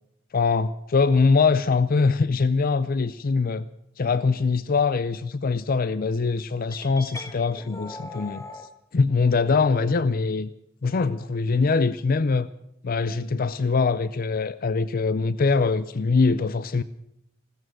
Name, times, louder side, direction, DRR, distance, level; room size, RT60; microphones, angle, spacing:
voice 1, 0.3-3.7 4.0-8.4 8.9-10.5 10.8-12.5 12.8-16.8, left 4 dB, 45° left, 16 dB, 0.5 m, -23 dB
sound 1, 6.7-8.7, left 2 dB, 15° left, 1.4 m, -40 dB
16.5 x 14.0 x 6.2 m, 0.78 s
head